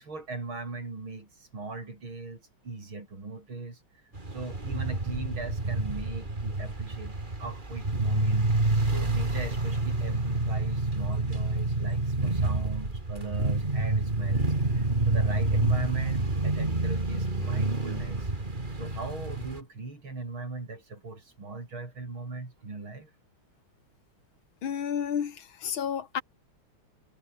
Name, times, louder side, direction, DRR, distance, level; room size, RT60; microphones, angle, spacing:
voice 1, 0.0-3.8 4.3-8.5 8.9-18.3 18.8-23.1, right 3 dB, 70° right, 6.6 m, -39 dB
sound 1, 4.1-19.6, right 2 dB, 20° right, 3.1 m, -28 dB
voice 2, 24.6-26.2, left 8 dB, 70° left, 2.4 m, -31 dB
omnidirectional pair, 2.3 m